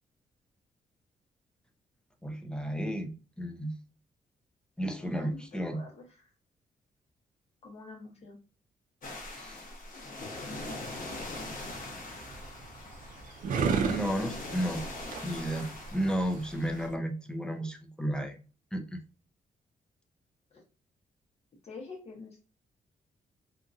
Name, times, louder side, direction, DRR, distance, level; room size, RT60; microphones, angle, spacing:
voice 1, 2.2-3.1 3.4-3.8 4.8-5.8 9.3-9.6 13.9-14.8 15.2-18.4 18.7-19.0, right 1 dB, 5° left, 0.4 m, -33 dB
voice 2, 5.0-6.2 7.6-8.4 20.5-20.6 21.6-22.5, left 3 dB, 45° left, 1.2 m, -47 dB
sound 1, 9.0-16.9, left 2 dB, 65° left, 0.9 m, -42 dB
sound 2, 10.9-16.9, right 5 dB, 65° right, 0.5 m, -35 dB
2.8 x 2.4 x 2.5 m
cardioid pair, 125°, 15 cm